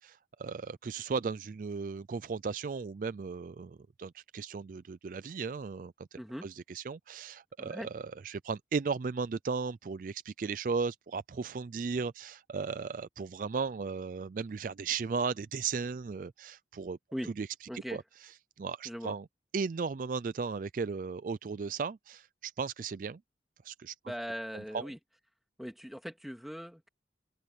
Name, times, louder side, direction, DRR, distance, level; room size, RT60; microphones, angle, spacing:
voice 1, 0.0-6.1 6.4-17.0 17.4-17.5 17.9-18.0 18.6-19.2 19.5-23.2 23.6-23.9 24.7-24.8, right 5 dB, 45° right, 0.4 m, -36 dB
voice 2, 6.2-6.5 7.6-7.9 17.1-17.3 17.7-18.0 18.8-19.2 24.1-25.0 25.6-26.9, equal, ahead, 2.6 m, -40 dB
open air
head